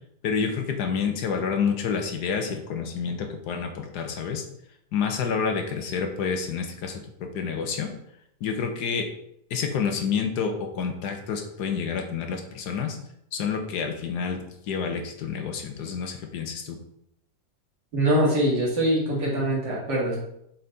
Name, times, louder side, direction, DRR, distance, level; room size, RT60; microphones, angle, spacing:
voice 1, 0.2-4.4 4.9-7.9 8.4-9.1 9.5-13.0 13.3-16.8, left 6 dB, 70° left, 4 dB, 1.4 m, -28 dB
voice 2, 17.9-20.2, right 1 dB, 85° right, -5 dB, 2.7 m, -23 dB
6.5 x 4.1 x 3.9 m, 0.76 s
omnidirectional pair, 1.8 m